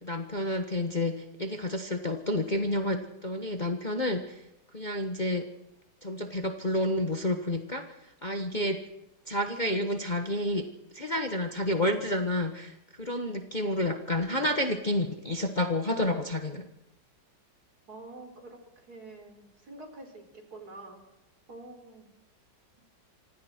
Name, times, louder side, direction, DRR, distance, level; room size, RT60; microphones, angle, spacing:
voice 1, 0.0-4.4 4.7-5.5 6.0-8.8 9.3-10.7 10.9-16.7, left 1 dB, 25° left, 5 dB, 1.3 m, -30 dB
voice 2, 17.9-21.0 21.5-22.1, right 2 dB, 55° right, 4 dB, 5.2 m, -47 dB
26.0 x 26.0 x 4.5 m, 0.89 s
omnidirectional pair, 2.0 m